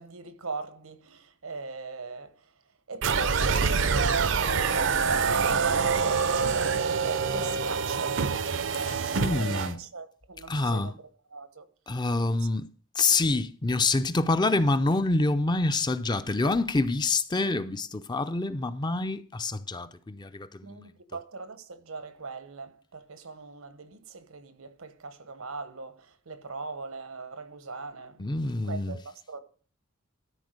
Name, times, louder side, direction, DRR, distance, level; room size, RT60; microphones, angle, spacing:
voice 1, 0.0-2.4 2.9-8.2 8.6-11.7 20.6-29.4, right 4 dB, 90° right, 1.2 m, -38 dB
sound 1, 3.0-9.7, right 5 dB, 60° right, 0.6 m, -26 dB
voice 2, 8.8-9.8 10.5-10.9 11.9-12.7 13.0-20.8 28.2-29.0, left 3 dB, 20° left, 0.5 m, -27 dB
13.0 x 4.4 x 6.5 m
head